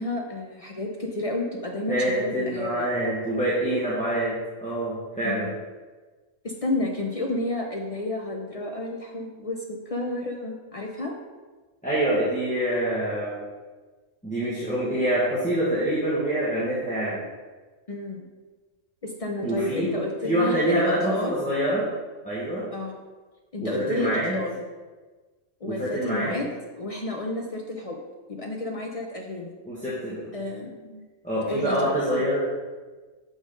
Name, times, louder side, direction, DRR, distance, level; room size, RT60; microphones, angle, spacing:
voice 1, 0.0-2.8 5.2-5.5 6.4-11.1 17.9-18.2 19.0-21.3 22.7-23.0 23.5-24.6 25.6-26.5 26.8-28.0 28.3-29.5 30.3-31.1 31.5-31.9, left 2 dB, 50° left, 0 dB, 0.4 m, -31 dB
voice 2, 1.9-5.5 11.8-13.4 14.2-17.2 19.4-19.9 20.2-21.9 22.2-22.6 23.6-24.4 25.6-26.4 29.6-30.3 31.2-32.4, right 1 dB, 5° left, -10 dB, 1.2 m, -26 dB
6.3 x 3.8 x 5.1 m, 1.3 s
omnidirectional pair, 1.3 m